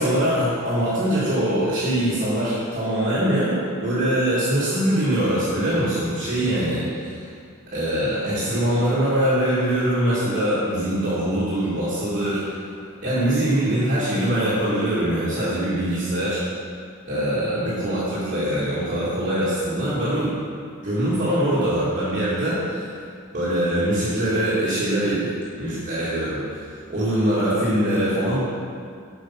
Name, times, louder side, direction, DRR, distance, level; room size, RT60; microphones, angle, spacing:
voice 1, 0.0-7.2 7.7-12.6 13.0-16.4 17.0-20.3 20.8-22.9 23.3-25.3 25.6-28.4, right 1 dB, 40° right, -10 dB, 2.1 m, -23 dB
8.1 x 5.4 x 5.7 m, 2.2 s
head